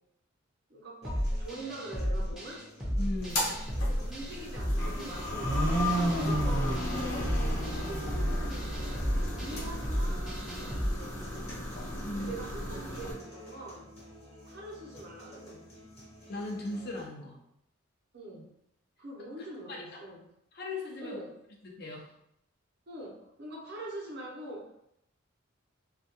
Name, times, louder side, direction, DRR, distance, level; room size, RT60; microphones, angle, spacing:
voice 1, 0.7-2.7 3.8-8.8 9.3-11.2 12.1-13.9 14.4-15.7 18.1-18.5 19.0-20.3 21.0-21.4 22.9-24.7, right 1 dB, 55° right, -2 dB, 0.6 m, -44 dB
sound 1, 1.0-17.0, equal, 30° left, 0.8 m, -52 dB
sound 2, 1.0-10.9, equal, ahead, 0.6 m, -33 dB
voice 2, 3.0-3.6 12.0-12.3 16.3-17.4 19.7-19.8 20.5-21.2 21.6-22.1, left 2 dB, 50° left, 0 dB, 0.5 m, -37 dB
sound 3, 3.2-13.1, equal, 85° left, 0.9 m, -33 dB
2.3 x 2.2 x 2.7 m, 0.76 s
head